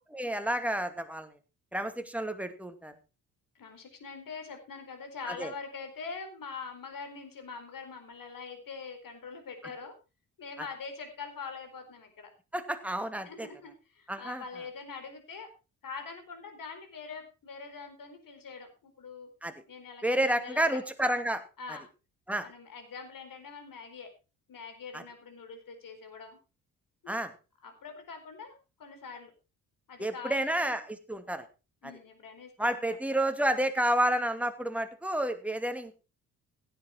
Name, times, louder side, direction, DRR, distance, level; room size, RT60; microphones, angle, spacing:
voice 1, 0.1-1.3 1.7-2.9 5.4-5.5 12.5-13.5 14.1-14.4 19.4-19.5 20.0-21.4 22.3-22.5 24.9-25.0 27.1-27.3 30.0-31.4 32.6-36.0, right 1 dB, 5° right, 7 dB, 2.4 m, -30 dB
voice 2, 3.5-9.9 10.4-12.3 13.2-15.5 15.8-19.3 19.7-20.8 21.6-21.9 22.4-24.1 24.5-26.4 27.0-27.3 27.6-28.5 28.8-29.3 29.9-30.8 31.8-33.0, left 5 dB, 50° left, 6 dB, 4.5 m, -44 dB
16.0 x 8.4 x 4.6 m, 0.32 s
figure-of-eight pair, 45°, 42 cm